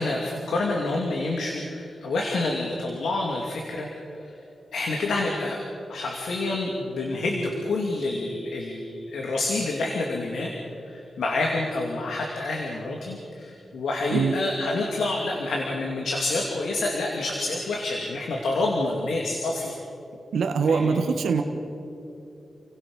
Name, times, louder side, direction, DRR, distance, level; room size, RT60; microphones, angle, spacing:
voice 1, 0.0-3.9 4.2-4.3 4.7-5.6 5.9-10.5 10.8-19.7 20.6-21.0, left 2 dB, 90° left, 0 dB, 2.6 m, -28 dB
voice 2, 20.3-21.4, right 5 dB, 85° right, 5 dB, 1.6 m, -23 dB
30.0 x 17.0 x 5.5 m, 2.9 s
cardioid pair, 65°, 0 cm